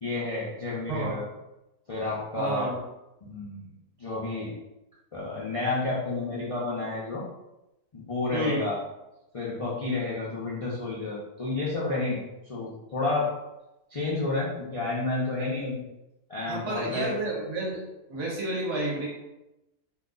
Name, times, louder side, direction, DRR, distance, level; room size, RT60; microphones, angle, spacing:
voice 1, 0.0-1.2 1.9-2.7 3.2-3.7 4.0-4.5 5.1-7.2 7.9-8.8 9.3-12.2 12.5-13.3 13.9-15.8 16.3-17.1, left 2 dB, 65° left, -8 dB, 0.3 m, -30 dB
voice 2, 0.9-1.2 2.4-2.8 8.3-8.7 16.5-17.8 18.1-19.1, right 1 dB, 50° right, -3 dB, 1.1 m, -30 dB
2.9 x 2.2 x 3.7 m, 0.94 s
omnidirectional pair, 1.6 m